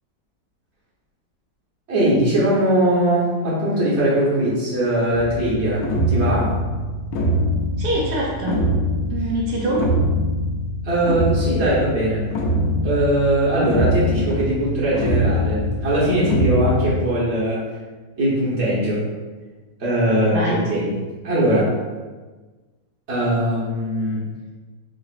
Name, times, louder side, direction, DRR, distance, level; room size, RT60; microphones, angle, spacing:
voice 1, 1.9-6.5 10.8-12.3 12.8-17.7 18.2-19.0 19.8-20.9 21.2-21.7 23.1-24.2, right 1 dB, 45° right, -7 dB, 1.3 m, -20 dB
sound 1, 5.1-16.9, equal, 70° left, 0.9 m, -23 dB
voice 2, 7.8-8.7 9.1-9.9 20.3-20.6, right 1 dB, 70° right, -3 dB, 1.2 m, -24 dB
4.0 x 2.9 x 2.5 m, 1.3 s
omnidirectional pair, 1.9 m